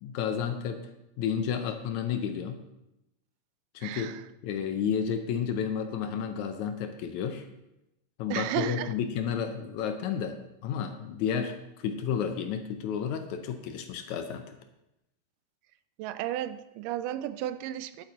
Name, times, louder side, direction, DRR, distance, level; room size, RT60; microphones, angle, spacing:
voice 1, 0.0-0.8 1.2-2.6 3.8-4.2 4.4-7.5 8.2-10.4 10.6-14.6, left 7 dB, 75° left, 7 dB, 1.9 m, -31 dB
voice 2, 3.8-4.2 8.3-8.9 16.0-18.1, right 12 dB, 85° right, 13 dB, 2.1 m, -33 dB
10.5 x 8.1 x 4.2 m, 0.89 s
omnidirectional pair, 3.7 m